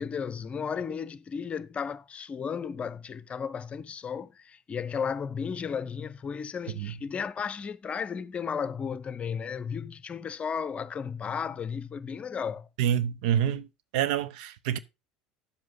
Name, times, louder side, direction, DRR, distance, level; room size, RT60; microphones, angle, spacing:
voice 1, 0.0-12.7, left 6 dB, 30° left, 0.7 m, -34 dB
voice 2, 12.8-13.7 13.9-14.8, right 10 dB, 65° right, 0.7 m, -27 dB
10.0 x 7.6 x 3.9 m
figure-of-eight pair, 70°, 4 cm